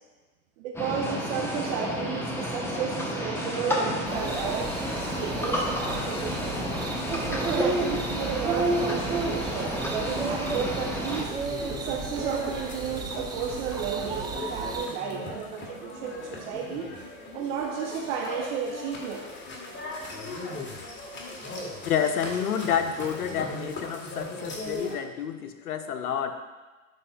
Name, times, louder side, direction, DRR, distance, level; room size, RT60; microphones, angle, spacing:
voice 1, 0.6-6.6 7.3-16.9 17.3-19.3, right 7 dB, 55° right, 1 dB, 0.8 m, -33 dB
sound 1, 0.7-11.2, left 1 dB, 5° left, 0.9 m, -31 dB
sound 2, 4.1-14.9, right 3 dB, 10° right, 0.4 m, -33 dB
sound 3, 11.2-25.0, left 2 dB, 25° left, 1.5 m, -38 dB
voice 2, 21.9-26.4, left 8 dB, 85° left, 8 dB, 0.7 m, -29 dB
11.0 x 4.2 x 2.4 m, 1.2 s
hypercardioid pair, 90°, 44 cm